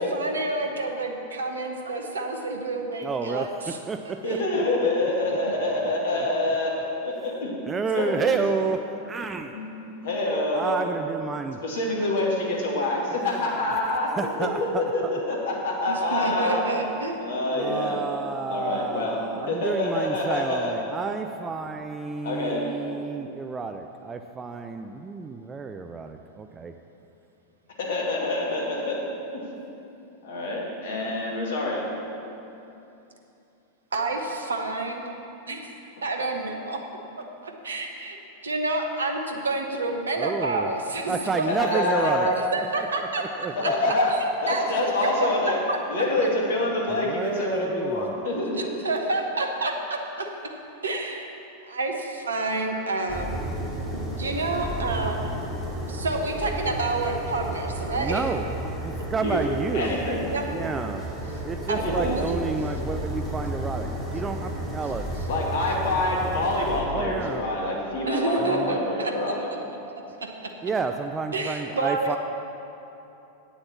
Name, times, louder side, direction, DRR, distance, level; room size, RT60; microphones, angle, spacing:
voice 1, 0.0-3.8 4.0-4.4 14.4-14.6 15.9-17.2 33.9-35.1 35.5-35.7 36.0-36.8 37.4-38.2 38.4-41.8 42.2-43.7 44.1-44.2 44.5-45.1 45.7-45.8 48.8-50.3 50.8-51.3 51.7-53.4 53.9-55.2 55.7-58.2 58.9-59.0 59.8-60.0 60.3-60.4 61.7-62.4 68.0-69.3 70.2-70.3 71.3-72.2, right 2 dB, 70° right, 3 dB, 1.1 m, -29 dB
voice 2, 3.0-4.2 4.5-4.6 6.1-6.3 7.7-8.8 9.0-9.6 10.5-11.6 13.2-13.6 14.2-15.1 17.5-26.7 40.2-40.7 41.1-42.3 43.2-43.9 46.9-48.2 58.0-58.5 58.8-60.0 60.4-61.0 61.4-65.1 66.9-67.4 68.4-68.8 70.6-72.2, right 4 dB, 20° right, 7 dB, 0.4 m, -30 dB
voice 3, 4.2-6.7 7.0-7.7 7.9-8.4 9.5-10.7 11.6-14.5 14.8-16.6 17.2-18.0 18.5-19.2 19.5-20.7 22.2-22.6 27.8-29.0 30.2-31.8 41.5-42.3 43.6-44.1 44.4-45.6 45.9-48.7 59.2-59.5 59.7-60.2 61.7-62.2 65.3-69.5, left 2 dB, 60° left, -2 dB, 2.2 m, -26 dB
sound 1, 53.1-66.8, right 1 dB, ahead, 2.3 m, -32 dB
8.9 x 7.1 x 7.2 m, 2.9 s
figure-of-eight pair, 90°, 0 cm